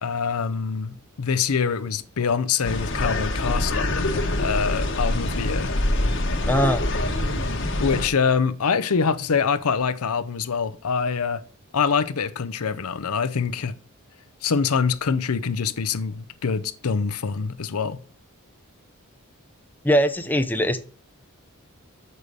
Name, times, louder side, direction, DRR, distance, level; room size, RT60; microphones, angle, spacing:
voice 1, 0.0-5.7 7.8-11.4 11.7-13.7 14.4-18.0, left 6 dB, 90° left, 0.6 m, -25 dB
sound 1, 2.6-8.1, left 1 dB, 60° left, 1.2 m, -25 dB
voice 2, 6.5-6.8 19.8-20.8, equal, 10° left, 0.6 m, -21 dB
6.8 x 5.4 x 6.2 m
head